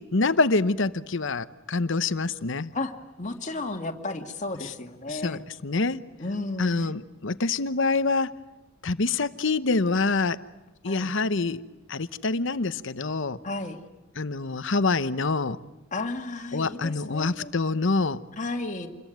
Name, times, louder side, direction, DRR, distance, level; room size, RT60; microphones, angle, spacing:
voice 1, 0.0-2.7 5.1-6.0 6.6-8.3 8.8-10.4 10.8-11.6 11.9-13.4 14.2-15.6 16.5-18.2, left 3 dB, 65° left, 13 dB, 0.9 m, -26 dB
voice 2, 3.2-5.4 6.2-6.9 10.8-11.1 13.4-13.8 15.9-17.5 18.4-18.9, left 2 dB, 35° left, 4 dB, 2.2 m, -33 dB
28.0 x 22.0 x 9.3 m, 1.0 s
head